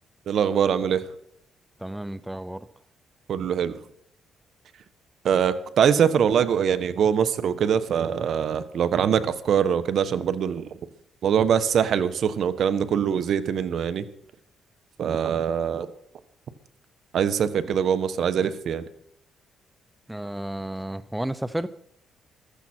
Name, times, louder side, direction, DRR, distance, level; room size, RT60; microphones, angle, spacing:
voice 1, 0.3-1.1 3.3-3.8 5.2-10.7 11.2-14.1 15.0-15.9 17.1-18.8, right 8 dB, 65° right, 12 dB, 1.2 m, -23 dB
voice 2, 1.8-2.7 20.1-21.7, right 1 dB, 5° right, 14 dB, 0.7 m, -32 dB
15.0 x 14.0 x 4.5 m, 0.72 s
cardioid pair, 90°, 0 cm